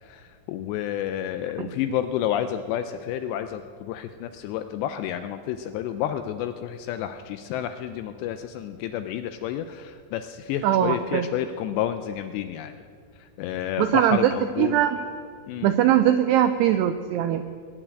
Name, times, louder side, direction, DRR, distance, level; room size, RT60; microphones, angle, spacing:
voice 1, 0.0-12.8 13.2-14.8 15.5-15.7, left 10 dB, 85° left, 9 dB, 2.5 m, -30 dB
voice 2, 10.6-11.3 13.8-14.3 14.6-15.0 15.6-17.4, right 11 dB, 90° right, 9 dB, 2.4 m, -21 dB
20.5 x 7.5 x 9.1 m, 2.2 s
omnidirectional pair, 5.4 m